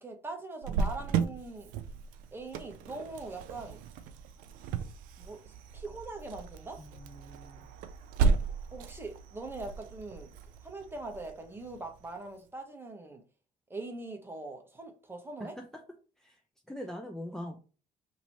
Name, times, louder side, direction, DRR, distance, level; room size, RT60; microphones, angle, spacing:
voice 1, 0.0-1.7 2.3-3.8 5.2-6.8 8.7-10.3 10.6-13.2 13.7-15.6, right 2 dB, 15° right, 1.1 m, -42 dB
Cricket, 0.6-12.1, right 5 dB, 90° right, 0.4 m, -35 dB
voice 2, 6.8-7.7 15.4-15.6 16.2-16.4 16.7-17.6, left 1 dB, 5° left, 0.6 m, -42 dB
3.0 x 2.9 x 4.1 m
cardioid pair, 80°, 14 cm